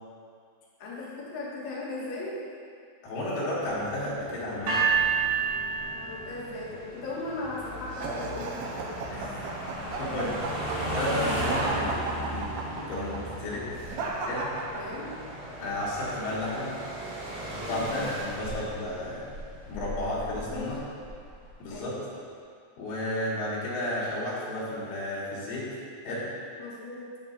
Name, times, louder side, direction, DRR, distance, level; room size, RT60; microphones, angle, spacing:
voice 1, 0.8-2.4 5.9-9.0 14.7-15.1 17.6-18.1 20.5-20.8 21.7-22.0 26.6-27.1, left 2 dB, 60° left, -9 dB, 1.2 m, -37 dB
voice 2, 3.0-4.9 9.1-9.4 10.0-13.6 14.3-14.5 15.6-16.7 17.5-19.2 19.7-20.8 21.6-21.9 22.8-25.7 26.0-26.3, left 1 dB, 90° left, -8 dB, 4.5 m, -32 dB
sound 1, 3.6-21.8, right 1 dB, 45° right, 2.4 m, -37 dB
sound 2, 4.7-6.8, right 7 dB, 60° right, 4.0 m, -27 dB
sound 3, 7.9-15.3, right 3 dB, 80° right, 2.8 m, -35 dB
9.4 x 8.6 x 2.7 m, 2.2 s
omnidirectional pair, 5.5 m